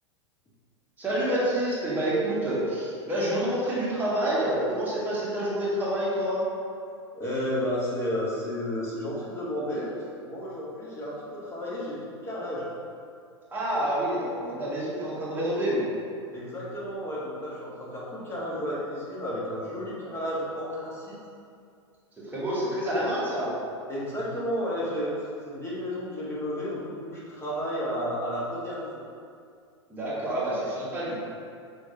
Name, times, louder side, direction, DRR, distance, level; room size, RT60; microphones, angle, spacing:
voice 1, 1.0-6.4 13.5-15.9 22.2-23.5 29.9-31.1, right 1 dB, 10° right, -8 dB, 1.4 m, -28 dB
voice 2, 7.1-9.9 10.2-12.7 16.3-21.2 23.9-28.9, equal, 15° left, -7 dB, 1.1 m, -32 dB
5.3 x 3.2 x 2.7 m, 2.3 s
figure-of-eight pair, 95°, 15 cm